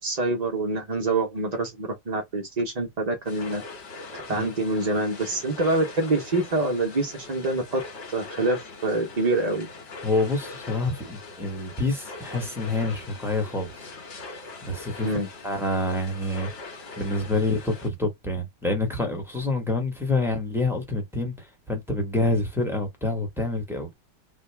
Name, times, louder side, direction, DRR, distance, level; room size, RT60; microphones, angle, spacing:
voice 1, 0.0-3.6 4.1-7.8 8.1-9.7 15.0-15.3, right 2 dB, 50° right, 0.4 m, -26 dB
sound 1, 3.2-17.9, left 3 dB, 80° left, 2.1 m, -42 dB
voice 2, 10.0-13.7 14.6-15.1 15.4-16.5 17.0-23.9, left 2 dB, ahead, 1.0 m, -27 dB
3.8 x 2.3 x 3.3 m
omnidirectional pair, 1.9 m